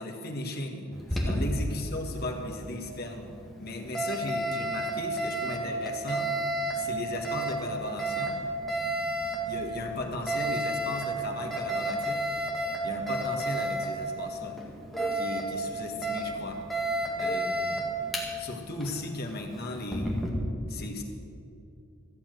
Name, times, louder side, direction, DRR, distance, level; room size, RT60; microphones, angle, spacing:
voice 1, 0.0-3.3 3.6-6.3 6.7-8.4 9.5-12.3 12.8-14.6 15.1-16.6 17.2-17.9 18.4-20.1 20.7-21.0, left 1 dB, 50° left, 2 dB, 1.7 m, -36 dB
Alarm, 0.9-20.3, right 1 dB, ahead, 1.9 m, -32 dB
14.0 x 7.3 x 9.2 m, 2.6 s
head